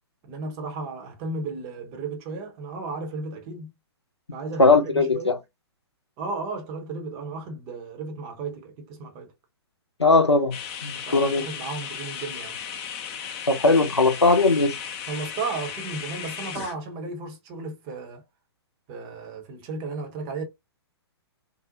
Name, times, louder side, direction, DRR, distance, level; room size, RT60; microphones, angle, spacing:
voice 1, 0.3-3.7 4.3-5.4 6.2-9.3 11.1-12.6 15.1-18.2 18.9-20.4, right 3 dB, 25° right, 0.7 m, -34 dB
voice 2, 4.6-5.3 10.0-10.6 10.8-11.5 13.5-14.8, left 3 dB, 85° left, 0.6 m, -19 dB
sound 1, 10.5-16.7, left 8 dB, 25° left, 0.5 m, -36 dB
2.6 x 2.0 x 2.6 m
figure-of-eight pair, 115°, 14 cm